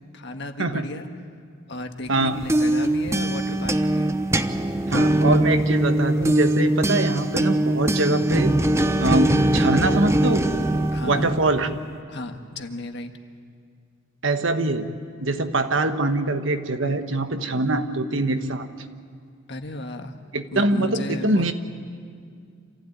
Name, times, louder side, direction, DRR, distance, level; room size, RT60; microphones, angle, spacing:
voice 1, 0.1-1.1 1.7-4.1 10.9-11.3 12.1-13.1 19.5-20.1 20.5-21.5, left 2 dB, 60° left, 5 dB, 1.5 m, -34 dB
sound 1, 2.2-11.8, right 1 dB, 15° right, 0.8 m, -22 dB
voice 2, 4.9-8.5 9.0-10.7 11.1-11.7 14.2-14.9 15.2-18.7 20.3-21.5, right 2 dB, 65° right, 8 dB, 1.3 m, -23 dB
27.0 x 15.5 x 9.2 m, 2.2 s
head